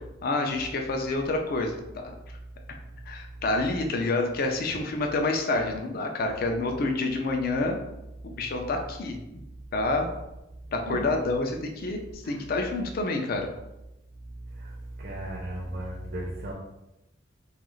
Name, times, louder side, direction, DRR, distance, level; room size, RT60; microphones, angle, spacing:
voice 1, 0.2-2.1 3.1-7.8 8.2-9.2 9.7-10.1 10.7-13.5, left 2 dB, 50° left, 3 dB, 0.4 m, -28 dB
voice 2, 10.9-11.2 12.2-12.4 14.4-16.5, right 1 dB, 50° right, -3 dB, 0.5 m, -36 dB
2.4 x 2.3 x 3.0 m, 0.93 s
head